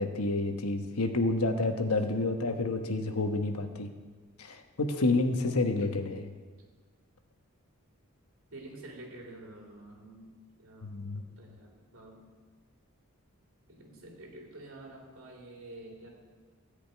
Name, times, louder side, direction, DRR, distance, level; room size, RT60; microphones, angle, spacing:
voice 1, 0.0-3.9 4.4-6.2 10.8-11.2, left 2 dB, 90° left, 5 dB, 1.1 m, -29 dB
voice 2, 8.5-11.0 11.4-12.2 13.7-16.1, right 2 dB, 65° right, -1 dB, 2.7 m, -49 dB
14.0 x 5.1 x 9.1 m, 1.4 s
head